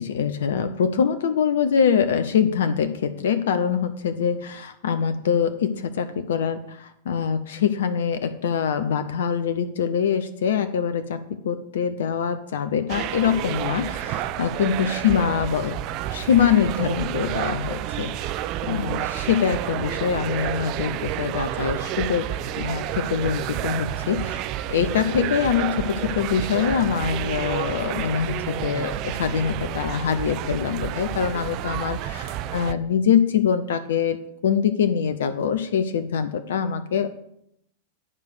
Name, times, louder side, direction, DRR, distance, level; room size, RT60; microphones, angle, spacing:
voice 1, 0.0-15.8 16.1-18.3 18.6-22.3 22.6-24.4 24.7-37.2, left 7 dB, 60° left, 11 dB, 0.6 m, -24 dB
sound 1, 12.9-32.7, right 12 dB, 40° right, 0.5 m, -30 dB
10.0 x 4.8 x 6.7 m, 0.75 s
figure-of-eight pair, 90°, 0 cm